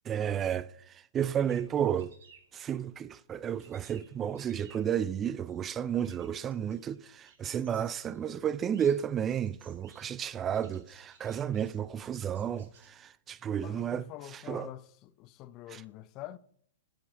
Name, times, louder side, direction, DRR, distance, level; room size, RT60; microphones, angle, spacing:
voice 1, 0.1-2.1 2.5-14.0 14.3-14.7 15.7-15.8, right 9 dB, 25° right, 0.3 m, -32 dB
sound 1, 1.5-12.9, right 5 dB, 65° right, 2.2 m, -61 dB
voice 2, 13.6-16.4, left 14 dB, 35° left, 0.5 m, -46 dB
11.5 x 5.4 x 5.3 m
hypercardioid pair, 115°, 0 cm